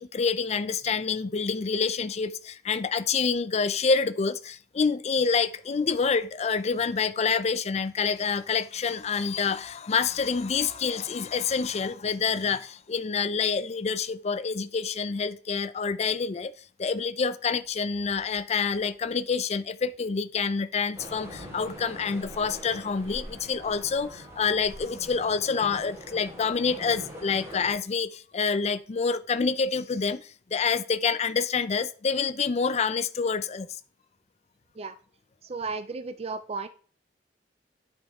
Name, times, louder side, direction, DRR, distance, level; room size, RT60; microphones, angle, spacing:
voice 1, 0.0-16.5 16.8-33.7, left 5 dB, 40° left, 0.5 m, -27 dB
sound 1, 20.9-27.8, equal, 15° right, 4.0 m, -43 dB
voice 2, 35.4-36.7, right 4 dB, 35° right, 0.5 m, -34 dB
9.9 x 5.5 x 3.6 m
head